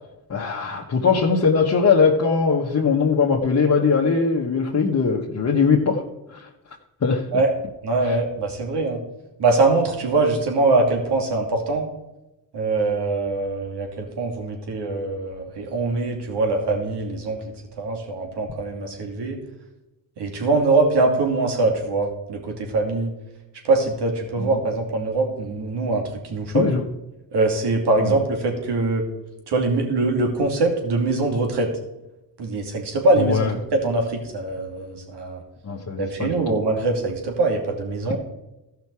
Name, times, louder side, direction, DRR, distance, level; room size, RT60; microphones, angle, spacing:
voice 1, 0.3-6.0 6.3-6.5 7.0-7.2 8.0-8.2 24.4-24.6 26.5-26.8 28.0-28.1 33.2-33.5 35.6-36.3, left 5 dB, 40° left, -2 dB, 1.3 m, -20 dB
voice 2, 7.8-9.0 9.4-11.9 12.5-17.4 17.8-19.4 20.2-23.1 23.6-26.7 27.3-29.0 29.5-31.7 32.4-35.4 36.0-38.2, right 3 dB, 65° right, 2 dB, 2.7 m, -23 dB
15.0 x 5.8 x 4.8 m, 0.97 s
supercardioid pair, 70°, 43 cm